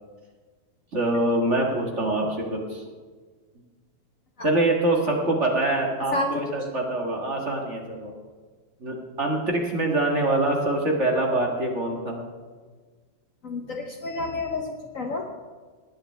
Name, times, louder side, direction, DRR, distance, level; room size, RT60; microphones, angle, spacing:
voice 1, 0.9-2.8 4.4-8.1 8.8-12.2, right 2 dB, 35° right, 0 dB, 1.8 m, -24 dB
voice 2, 6.1-6.6 13.4-15.3, left 2 dB, 50° left, 2 dB, 1.2 m, -29 dB
18.5 x 10.0 x 3.4 m, 1.5 s
omnidirectional pair, 2.2 m